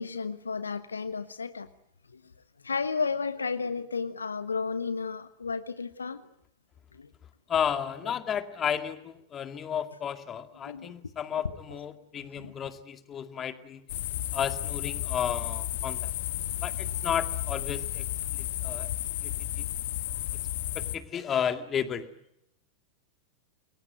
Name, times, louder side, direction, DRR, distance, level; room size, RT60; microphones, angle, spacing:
voice 1, 0.0-1.7 2.1-2.2 2.6-6.2 6.9-7.1 8.0-8.1 10.7-10.9 11.4-11.8 12.3-12.5, left 5 dB, 75° left, 13 dB, 1.2 m, -33 dB
voice 2, 7.5-13.9 14.3-16.1 16.6-18.0 18.4-18.9 19.2-19.3 19.6-19.7 20.8-22.1, left 8 dB, 25° left, 10 dB, 2.2 m, -32 dB
sound 1, 13.9-21.0, left 14 dB, 55° left, 1.6 m, -33 dB
29.0 x 22.0 x 9.1 m, 0.79 s
figure-of-eight pair, 90°, 0 cm